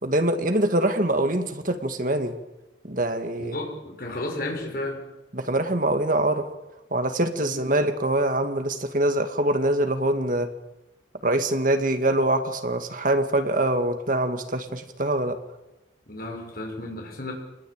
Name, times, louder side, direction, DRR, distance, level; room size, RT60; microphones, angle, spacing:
voice 1, 0.0-2.3 2.9-3.6 5.3-6.5 6.9-10.5 11.2-15.4, right 1 dB, 45° right, 8 dB, 2.2 m, -24 dB
voice 2, 3.4-5.0 7.4-7.6 16.1-17.3, left 1 dB, 50° left, 1 dB, 6.7 m, -33 dB
27.5 x 20.5 x 9.0 m, 0.99 s
head